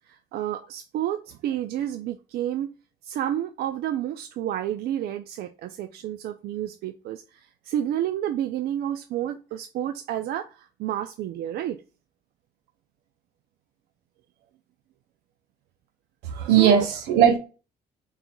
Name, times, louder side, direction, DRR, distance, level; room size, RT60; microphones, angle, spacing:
voice 1, 0.1-2.7 3.0-11.8 16.6-16.8, right 11 dB, 70° right, 0.4 m, -30 dB
voice 2, 16.2-17.4, right 8 dB, 85° right, 1.0 m, -19 dB
4.4 x 4.0 x 2.3 m
cardioid pair, 110°, 17 cm